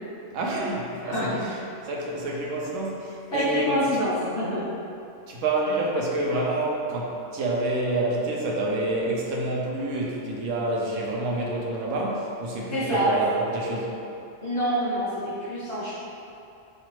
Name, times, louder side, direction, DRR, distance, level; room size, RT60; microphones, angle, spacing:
voice 1, 0.3-1.6 1.9-3.8 5.3-13.9, right 2 dB, 90° right, -3 dB, 1.0 m, -28 dB
voice 2, 1.0-1.4 3.3-4.6 12.7-13.1 14.4-15.9, equal, 60° left, -12 dB, 2.0 m, -26 dB
5.4 x 2.5 x 3.1 m, 2.7 s
omnidirectional pair, 1.3 m